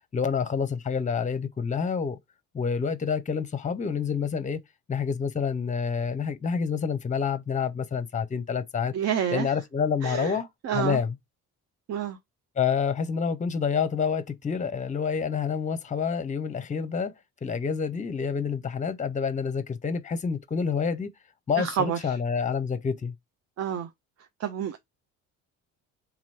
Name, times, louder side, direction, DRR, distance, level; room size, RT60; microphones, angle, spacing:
voice 1, 0.1-2.2 2.5-4.6 4.9-8.9 9.3-11.1 12.6-17.1 17.4-21.1 21.5-23.1, left 6 dB, 20° left, 0.7 m, -28 dB
voice 2, 8.9-9.5 10.0-10.4 10.6-11.0 11.9-12.2 21.6-22.2 23.6-23.9 24.4-24.8, right 9 dB, 40° right, 0.6 m, -28 dB
3.8 x 3.0 x 4.2 m
figure-of-eight pair, 50°, 41 cm